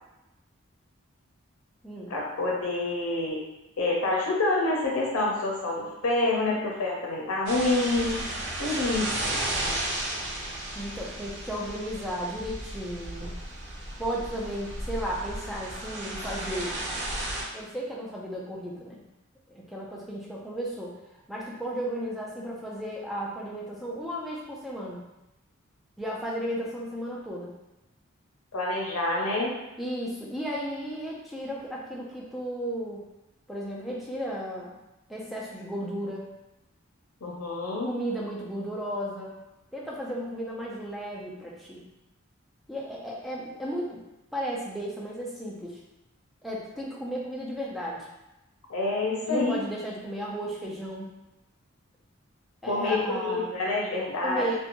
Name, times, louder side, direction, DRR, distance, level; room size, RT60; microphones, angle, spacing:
voice 1, 2.1-3.4 3.8-8.2 8.6-9.7 28.5-29.5 37.2-37.9 48.7-49.6 52.6-54.5, left 2 dB, 85° left, -3 dB, 0.6 m, -27 dB
sound 1, 7.5-17.4, right 1 dB, 50° right, 0.5 m, -34 dB
voice 2, 10.7-13.3 14.0-16.8 17.5-19.0 19.5-21.0 21.3-25.0 26.0-27.5 29.8-33.0 33.5-34.7 35.1-36.3 37.8-39.3 39.7-41.8 42.7-44.0 44.3-45.8 46.4-48.1 49.2-51.1 52.6-53.5 54.2-54.6, equal, ahead, -5 dB, 0.4 m, -34 dB
2.5 x 2.2 x 2.8 m, 0.96 s
head